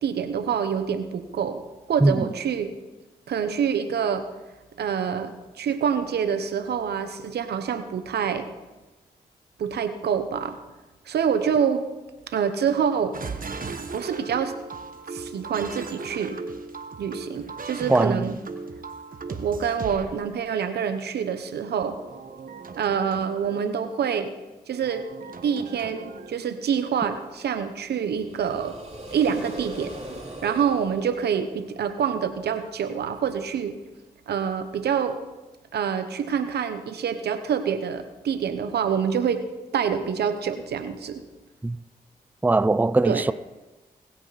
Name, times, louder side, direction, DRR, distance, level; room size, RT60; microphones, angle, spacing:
voice 1, 0.0-1.6 1.9-2.7 3.3-4.3 4.8-8.5 9.6-10.6 11.1-11.8 12.3-13.2 13.9-14.5 15.1-16.4 17.0-18.4 19.3-22.0 22.7-24.3 24.7-25.1 25.4-28.8 29.1-29.9 30.4-33.8 34.3-35.2 35.7-39.4 39.7-41.2 43.0-43.2, right 7 dB, 90° right, 1.0 m, -26 dB
sound 1, 13.1-20.1 22.0-23.6 24.7-26.4 27.0-27.3, right 4 dB, 60° right, 1.4 m, -37 dB
voice 2, 17.9-18.3 41.6-41.8 42.4-43.3, right 2 dB, 10° right, 0.4 m, -20 dB
sound 2, 28.0-32.0, right 1 dB, 40° right, 4.3 m, -40 dB
21.0 x 9.0 x 4.1 m
supercardioid pair, 40°, 16 cm